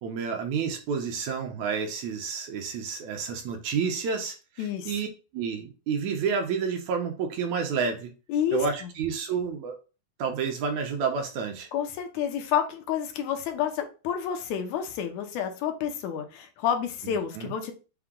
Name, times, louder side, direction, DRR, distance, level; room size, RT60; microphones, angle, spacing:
voice 1, 0.0-5.1 5.3-8.1 8.5-9.8 10.2-11.7 17.0-17.5, right 5 dB, 75° right, 3 dB, 2.1 m, -30 dB
voice 2, 4.6-4.9 8.3-8.9 11.7-17.7, left 9 dB, 80° left, 5 dB, 2.0 m, -29 dB
5.7 x 2.1 x 3.6 m, 0.33 s
omnidirectional pair, 3.4 m